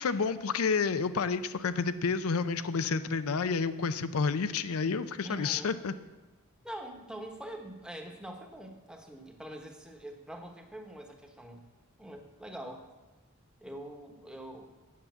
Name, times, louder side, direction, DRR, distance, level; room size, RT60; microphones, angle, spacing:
voice 1, 0.0-5.9, left 5 dB, 75° left, 13 dB, 0.5 m, -30 dB
voice 2, 5.2-5.7 6.6-11.7 12.0-12.9 13.6-14.7, right 1 dB, 5° right, 3 dB, 1.1 m, -44 dB
9.5 x 7.2 x 7.9 m, 1.1 s
head